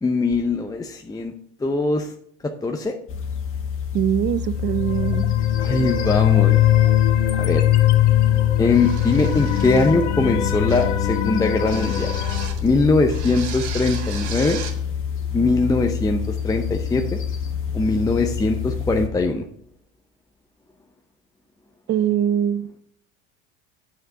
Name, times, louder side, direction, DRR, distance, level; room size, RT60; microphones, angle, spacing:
voice 1, 0.0-1.3 1.6-2.1 2.4-2.9 5.6-6.6 7.3-7.6 8.6-12.1 12.6-14.6 15.3-17.2 17.7-19.5, left 3 dB, 10° left, 4 dB, 0.7 m, -21 dB
sound 1, 3.1-19.1, left 7 dB, 35° left, 1.8 m, -28 dB
voice 2, 3.9-5.3 21.9-22.7, right 10 dB, 30° right, 17 dB, 0.6 m, -22 dB
sound 2, 4.6-12.5, left 13 dB, 85° left, 1.4 m, -20 dB
sound 3, 8.7-10.1 10.7-11.0 11.7-12.7 13.1-14.8, right 6 dB, 55° right, 2.2 m, -36 dB
8.7 x 6.7 x 4.8 m, 0.67 s
hypercardioid pair, 90°, 34 cm